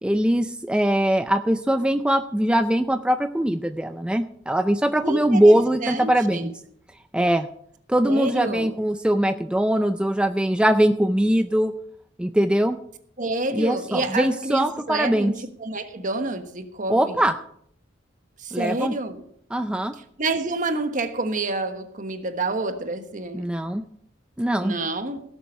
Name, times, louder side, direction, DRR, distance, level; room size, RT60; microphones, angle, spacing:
voice 1, 0.0-6.5 7.1-7.5 7.9-11.7 12.2-12.8 13.5-15.3 16.9-17.3 18.5-18.9 19.5-19.9 23.3-23.8 24.4-24.8, right 1 dB, 5° right, 8 dB, 0.4 m, -21 dB
voice 2, 5.0-5.6 5.8-6.5 8.0-8.7 13.2-15.3 15.6-17.2 18.4-19.2 20.2-23.4 24.6-25.2, right 2 dB, 45° right, 8 dB, 1.3 m, -28 dB
17.0 x 7.2 x 5.4 m, 0.68 s
head